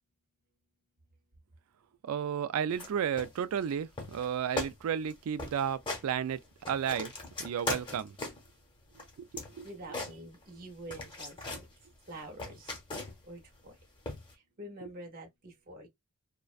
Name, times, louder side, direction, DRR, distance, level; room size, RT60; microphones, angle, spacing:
voice 1, 2.0-6.4 6.7-7.1 7.4-8.2 9.2-9.3 9.6-9.7, right 8 dB, 70° right, 0.3 m, -32 dB
sound 1, 2.7-2.9 3.2-3.7 4.0-4.3 4.6-4.7 5.0-5.1 5.4-6.1 6.4-8.5 8.9-10.6 10.9-11.7 12.1-13.3 14.1-14.3, left 2 dB, 20° left, 0.8 m, -39 dB
voice 2, 9.6-11.4 12.1-12.8 13.2-13.7 14.6-15.9, right 1 dB, 40° right, 0.7 m, -46 dB
2.4 x 2.1 x 2.4 m
head